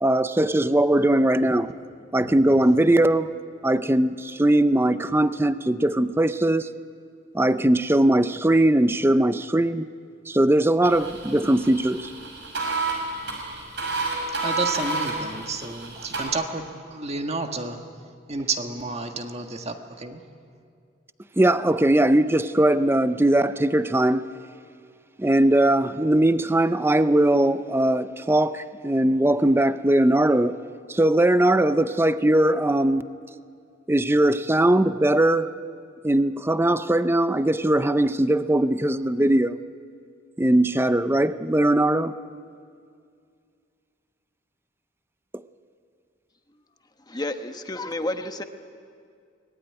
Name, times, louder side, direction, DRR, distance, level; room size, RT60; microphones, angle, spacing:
voice 1, 0.0-1.7 2.1-3.3 3.6-6.7 7.3-9.9 10.3-12.1 21.4-24.3 25.2-30.5 30.9-33.1 33.9-35.5 36.0-39.6 40.4-42.1, right 1 dB, 10° right, 12 dB, 0.5 m, -20 dB
sound 1, 10.8-16.2, right 3 dB, 60° right, 6.1 m, -30 dB
voice 2, 14.3-17.8 18.3-20.2, right 3 dB, 35° right, 5 dB, 1.6 m, -31 dB
voice 3, 47.1-48.4, left 1 dB, 20° left, 7 dB, 1.1 m, -30 dB
24.5 x 19.0 x 9.8 m, 2.3 s
head